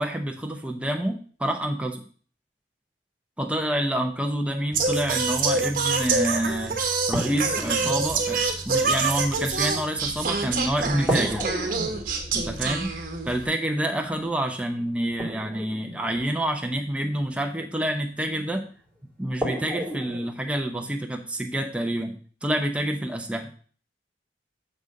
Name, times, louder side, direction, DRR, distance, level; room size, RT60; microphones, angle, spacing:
voice 1, 0.0-2.0 3.4-6.8 7.1-11.4 12.3-12.9 13.3-18.6 19.2-23.5, right 1 dB, 5° right, 3 dB, 0.7 m, -28 dB
Singing, 4.7-13.4, right 4 dB, 50° right, 1.3 m, -26 dB
sound 1, 6.3-6.4 7.1-10.5 11.1-17.2 18.6-18.7 19.4-20.3, right 1 dB, 10° left, 2.4 m, -34 dB
6.6 x 6.1 x 5.2 m, 0.42 s
head